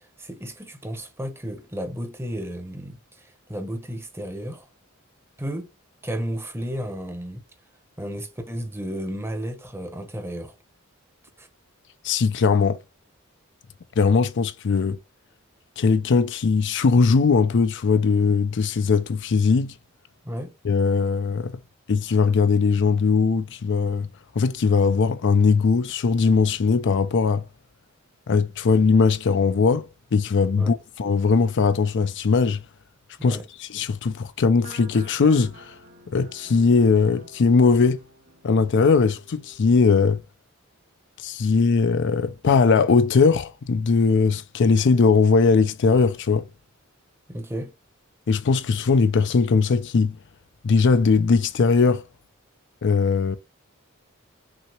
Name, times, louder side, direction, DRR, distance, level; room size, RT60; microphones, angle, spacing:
voice 1, 0.0-4.7 5.4-5.7 6.0-7.4 8.0-10.5 11.4-11.5 20.2-20.5 30.6-30.7 33.2-33.4 47.3-47.7, equal, 10° right, 0.9 m, -33 dB
voice 2, 12.0-12.8 14.0-15.0 15.8-19.7 20.6-21.5 21.9-24.1 24.4-27.5 28.3-32.6 33.2-35.8 36.1-38.0 38.4-40.2 41.2-46.5 48.3-50.2 50.6-52.0 52.8-53.4, left 4 dB, 60° left, 0.5 m, -20 dB
sound 1, 34.5-39.8, right 2 dB, 55° right, 1.8 m, -48 dB
6.0 x 2.8 x 3.0 m
head